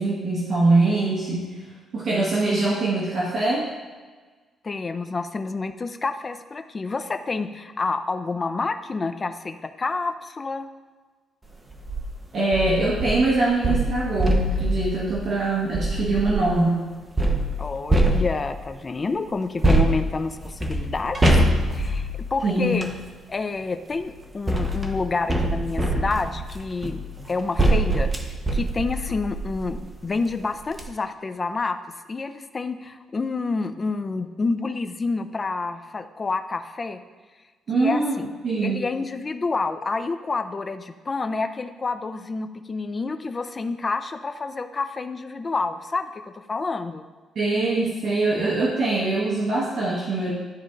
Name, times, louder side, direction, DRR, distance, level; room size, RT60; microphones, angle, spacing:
voice 1, 0.0-1.5 1.9-3.7 12.3-16.7 22.4-22.7 37.7-38.2 38.4-38.8 47.3-50.3, right 2 dB, 55° right, -6 dB, 1.4 m, -23 dB
voice 2, 4.6-10.7 16.3-16.6 17.6-21.2 21.7-22.9 23.3-27.0 27.3-31.8 32.1-37.0 37.7-38.3 38.6-47.0, left 3 dB, 30° left, 9 dB, 0.5 m, -28 dB
sound 1, 11.7-12.0 12.5-16.6 17.2-18.7 19.6-23.0 23.9-29.9 30.3-30.4 30.7-30.8, right 1 dB, 20° right, 0.9 m, -24 dB
12.0 x 4.3 x 2.5 m, 1.4 s
cardioid pair, 90°, 0 cm